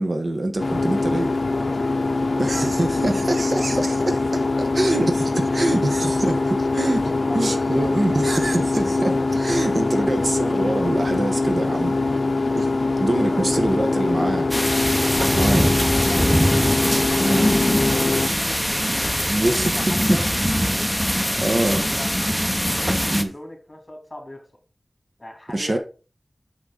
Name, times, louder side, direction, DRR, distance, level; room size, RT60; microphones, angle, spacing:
voice 1, 0.0-1.3 2.4-4.1 4.6-7.0 7.3-12.0 12.6-12.7 13.0-14.5 15.3-15.8 17.2-17.6 19.3-20.2 21.4-21.8 23.1-23.3 25.5-25.8, right 1 dB, 55° right, 1.2 m, -24 dB
sound 1, 0.6-18.3, left 3 dB, 60° left, 0.6 m, -23 dB
voice 2, 1.3-2.2 3.7-4.1 5.6-6.4 7.0-7.9 9.0-9.6 11.9-12.4 13.2-16.5 17.8-20.9 21.6-22.1 22.8-24.4 25.2-25.8, left 1 dB, 30° left, 2.7 m, -39 dB
sound 2, 14.5-23.2, equal, ahead, 0.9 m, -22 dB
6.7 x 6.3 x 3.9 m
wide cardioid pair, 60°, 0 cm